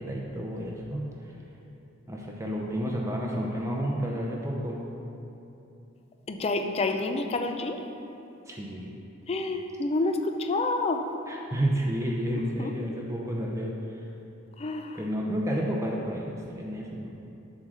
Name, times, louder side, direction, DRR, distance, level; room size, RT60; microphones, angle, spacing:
voice 1, 0.0-1.3 2.1-4.8 8.5-8.9 11.3-14.0 14.9-17.1, equal, 15° right, -2 dB, 0.6 m, -31 dB
voice 2, 6.3-7.8 9.3-11.0 12.6-12.7 14.6-15.0, left 2 dB, 30° left, 6 dB, 0.4 m, -28 dB
7.5 x 3.8 x 6.2 m, 2.8 s
head